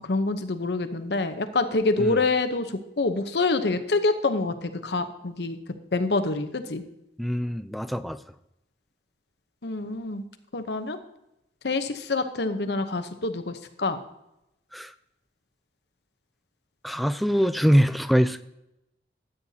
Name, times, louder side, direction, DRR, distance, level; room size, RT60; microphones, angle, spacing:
voice 1, 0.0-5.6 5.9-6.8 9.6-10.2 10.5-11.0 11.6-14.0, left 3 dB, 70° left, 8 dB, 0.8 m, -26 dB
voice 2, 7.2-8.2 14.7-14.9 16.8-18.4, equal, ahead, 11 dB, 0.3 m, -23 dB
13.5 x 8.9 x 2.8 m, 0.86 s
head